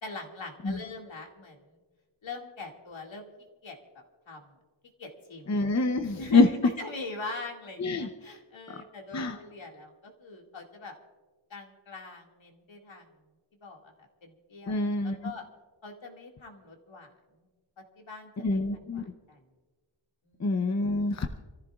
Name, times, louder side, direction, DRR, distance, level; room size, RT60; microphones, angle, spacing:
voice 1, 0.0-1.8 2.2-3.3 3.6-3.8 4.3-4.6 5.0-5.6 6.1-10.9 11.5-13.1 13.6-15.4 15.8-17.5 18.0-19.4 20.2-20.5, left 3 dB, 65° left, 1 dB, 2.2 m, -43 dB
voice 2, 5.5-6.5 7.8-8.1 9.1-9.4 14.7-15.2 18.4-19.0 20.4-21.3, left 3 dB, 35° left, 6 dB, 0.7 m, -25 dB
28.0 x 14.5 x 2.4 m, 1.3 s
wide cardioid pair, 145°, 49 cm